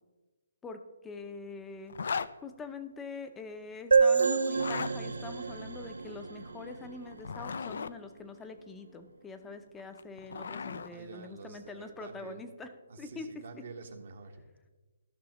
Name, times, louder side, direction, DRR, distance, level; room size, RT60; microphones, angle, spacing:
voice 1, 0.6-12.7 13.0-13.3, left 4 dB, 10° left, 8 dB, 0.7 m, -44 dB
Zipper (clothing), 1.9-2.3 4.5-4.9 7.1-7.9 9.8-10.9, left 5 dB, 65° left, 0.4 m, -36 dB
sound 1, 3.9-7.4, right 5 dB, 85° right, 0.7 m, -28 dB
voice 2, 10.9-12.4 12.9-14.4, right 4 dB, 60° right, 4 dB, 1.3 m, -47 dB
14.5 x 6.1 x 3.1 m, 1.3 s
hypercardioid pair, 150°, 0 cm